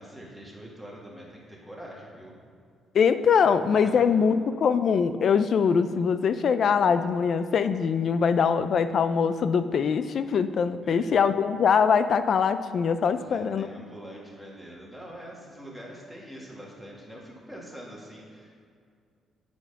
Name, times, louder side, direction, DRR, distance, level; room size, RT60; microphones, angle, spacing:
voice 1, 0.0-2.4 3.8-4.0 10.8-11.2 13.1-18.7, equal, ahead, -4 dB, 2.3 m, -44 dB
voice 2, 2.9-13.7, left 6 dB, 55° left, 11 dB, 0.4 m, -23 dB
8.6 x 5.2 x 5.8 m, 2.2 s
cardioid pair, 90°, 0 cm